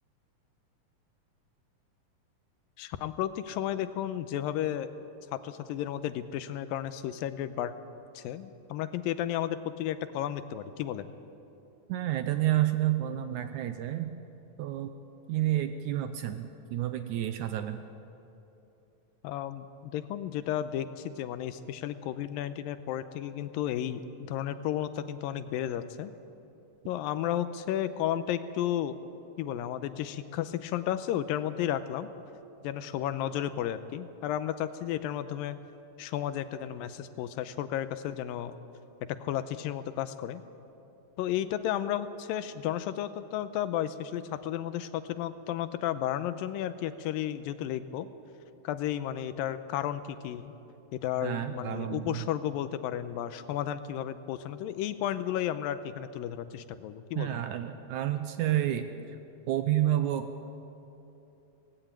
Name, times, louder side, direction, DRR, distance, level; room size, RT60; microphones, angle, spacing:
voice 1, 2.8-4.9 5.3-7.7 8.1-11.1 19.2-26.1 26.9-29.0 29.4-32.1 32.6-35.6 36.0-38.6 39.1-40.4 41.2-48.1 48.6-50.5 50.9-57.4, left 11 dB, 90° left, 12 dB, 2.5 m, -33 dB
voice 2, 11.9-14.1 14.6-14.9 15.3-17.8 51.2-52.2 57.2-59.2 59.5-60.3, right 13 dB, 80° right, 9 dB, 1.9 m, -30 dB
18.0 x 16.0 x 9.0 m, 3.0 s
omnidirectional pair, 4.0 m